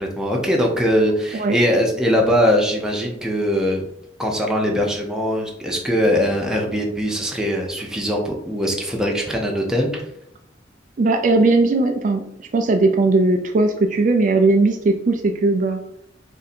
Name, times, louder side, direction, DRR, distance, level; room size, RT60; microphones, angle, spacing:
voice 1, 0.0-3.9 4.2-10.1, equal, 5° right, 0 dB, 0.6 m, -21 dB
voice 2, 11.0-12.2 12.5-15.8, right 3 dB, 40° right, 4 dB, 0.3 m, -18 dB
3.6 x 2.6 x 4.2 m, 0.74 s
head